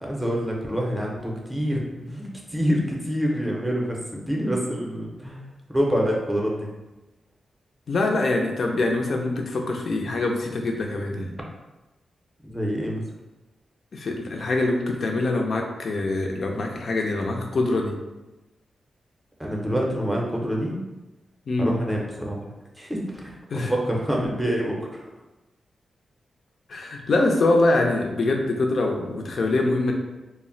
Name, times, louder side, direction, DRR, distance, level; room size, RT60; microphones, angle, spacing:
voice 1, 0.0-5.4 5.7-6.7 12.4-13.0 19.4-20.8 21.6-22.4 22.8-25.0, equal, 5° right, -2 dB, 0.6 m, -26 dB
voice 2, 7.9-11.3 13.9-18.0 21.5-21.7 23.5-23.7 26.7-29.9, left 2 dB, 60° left, 2 dB, 0.4 m, -24 dB
2.2 x 2.0 x 3.8 m, 1.0 s
cardioid pair, 95°, 0 cm